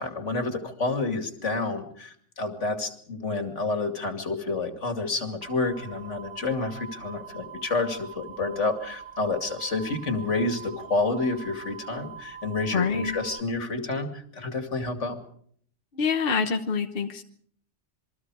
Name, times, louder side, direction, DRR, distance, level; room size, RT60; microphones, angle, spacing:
voice 1, 0.0-15.2, left 3 dB, 80° left, 6 dB, 2.8 m, -29 dB
sound 1, 5.4-13.4, right 7 dB, 45° right, 1.3 m, -43 dB
voice 2, 12.7-13.2 16.0-17.2, left 5 dB, 50° left, 6 dB, 1.3 m, -26 dB
28.0 x 22.5 x 4.8 m, 0.62 s
omnidirectional pair, 1.2 m